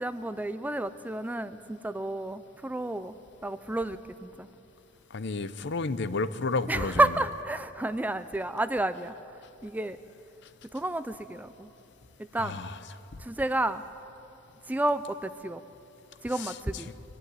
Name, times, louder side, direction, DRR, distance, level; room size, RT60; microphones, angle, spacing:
voice 1, 0.0-3.1 3.4-4.5 6.7-9.1 9.6-10.0 10.7-11.7 12.2-12.6 13.2-13.8 14.7-15.6 16.2-16.9, right 1 dB, 10° right, 12 dB, 0.4 m, -30 dB
voice 2, 5.1-7.1 12.4-12.8 16.3-16.6, left 3 dB, 60° left, 14 dB, 0.7 m, -31 dB
23.5 x 11.5 x 9.7 m, 2.8 s
head